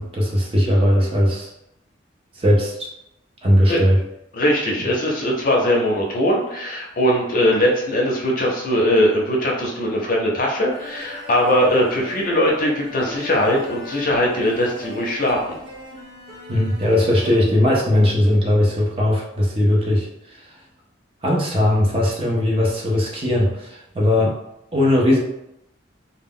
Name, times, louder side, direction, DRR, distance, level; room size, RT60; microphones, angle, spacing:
voice 1, 0.0-1.5 2.4-2.9 3.4-4.0 4.8-4.9 16.5-20.5 21.2-24.4 24.7-25.2, left 1 dB, 30° right, -2 dB, 0.5 m, -19 dB
voice 2, 4.3-15.6, equal, 45° left, -1 dB, 0.5 m, -20 dB
sound 1, 10.7-17.5, left 1 dB, 70° right, 1.0 m, -38 dB
2.1 x 2.1 x 3.6 m, 0.82 s
head